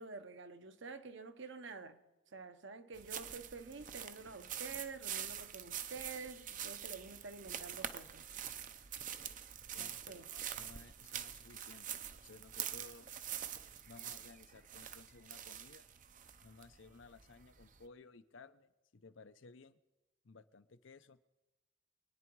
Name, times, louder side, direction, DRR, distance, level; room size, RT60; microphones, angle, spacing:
voice 1, 0.0-2.0 2.3-8.2 9.8-10.3, right 4 dB, 60° right, 1.0 m, -49 dB
sound 1, 2.9-17.8, right 9 dB, 40° right, 0.6 m, -45 dB
voice 2, 9.7-13.1 13.8-15.9 16.4-19.8 20.2-21.2, left 4 dB, 65° left, 0.7 m, -58 dB
25.0 x 9.7 x 4.7 m
head